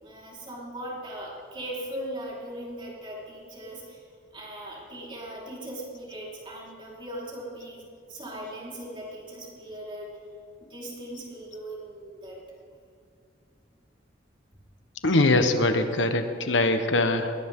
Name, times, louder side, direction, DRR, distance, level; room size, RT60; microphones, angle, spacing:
voice 1, 0.0-4.0 4.3-10.1 10.6-12.4, right 1 dB, 25° right, -5 dB, 4.6 m, -39 dB
voice 2, 15.0-17.3, left 2 dB, 85° left, 7 dB, 1.3 m, -22 dB
20.5 x 18.5 x 3.8 m, 2.3 s
head